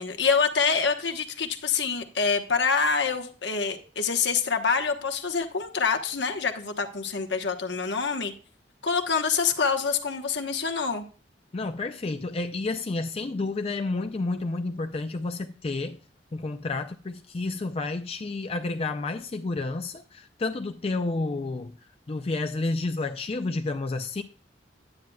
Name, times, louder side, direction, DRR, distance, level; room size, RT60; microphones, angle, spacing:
voice 1, 0.0-8.3 8.8-11.0, left 5 dB, 80° left, 1.2 m, -26 dB
voice 2, 11.5-16.0 16.3-21.7 22.1-24.2, left 3 dB, 35° left, 0.4 m, -30 dB
9.5 x 9.1 x 2.3 m
head